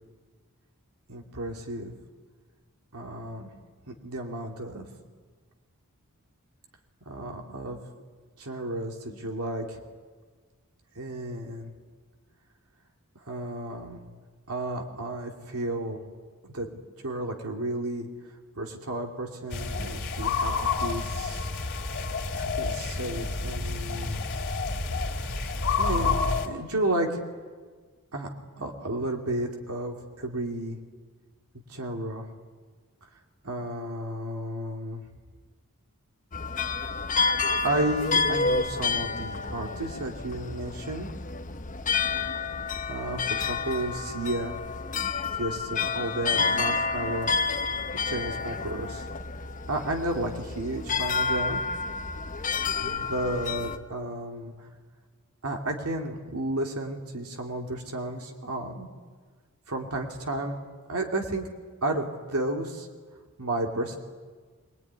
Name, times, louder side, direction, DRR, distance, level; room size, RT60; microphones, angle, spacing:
voice 1, 1.1-1.9 2.9-3.5 3.9-4.9 7.1-7.8 8.4-9.8 10.9-11.7 13.3-14.0 14.5-16.0 16.5-16.7 17.0-18.1 18.5-21.5 22.3-24.2 24.7-24.9 25.8-27.2 28.1-28.3 28.6-30.8 31.7-32.3 33.4-35.0 37.6-41.1 42.9-44.6 45.3-47.3 48.0-49.1 49.7-51.6 52.8-54.7 55.4-58.9 59.7-60.6 60.9-61.4 61.8-62.9 63.4-64.0, right 1 dB, 90° right, 1 dB, 2.7 m, -32 dB
sound 1, 19.5-26.5, left 4 dB, 55° left, 2.9 m, -29 dB
sound 2, 36.3-53.8, left 4 dB, 35° left, 1.1 m, -29 dB
24.5 x 21.0 x 9.7 m, 1.5 s
head